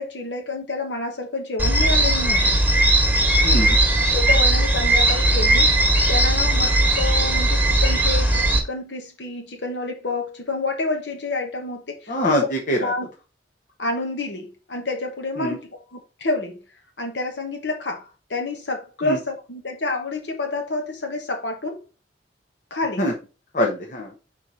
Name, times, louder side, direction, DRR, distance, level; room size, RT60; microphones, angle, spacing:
voice 1, 0.0-2.6 4.1-5.8 6.1-12.4 12.8-13.1 13.8-16.6 17.0-21.8 22.7-23.1, left 3 dB, 70° left, 1.2 m, -28 dB
sound 1, 1.6-8.6, right 1 dB, 10° right, 1.5 m, -18 dB
voice 2, 3.4-3.8 12.1-12.9 15.4-15.6 19.0-19.2 23.0-23.1 23.5-24.1, equal, 50° left, 1.2 m, -23 dB
4.7 x 4.4 x 5.4 m
head